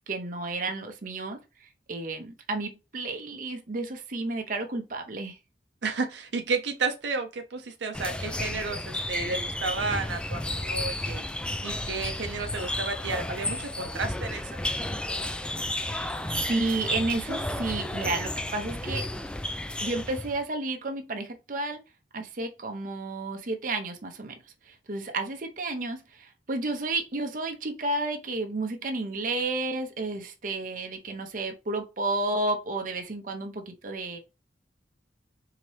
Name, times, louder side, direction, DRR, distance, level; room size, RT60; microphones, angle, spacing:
voice 1, 0.1-5.4 15.7-19.1 19.8-21.8 22.1-24.4 24.7-34.2, right 2 dB, 50° right, 0.7 m, -32 dB
voice 2, 5.8-11.2 11.6-14.4, right 4 dB, 85° right, 0.7 m, -32 dB
sound 1, 7.9-20.4, left 1 dB, 5° left, 0.3 m, -32 dB
4.1 x 2.8 x 3.2 m
head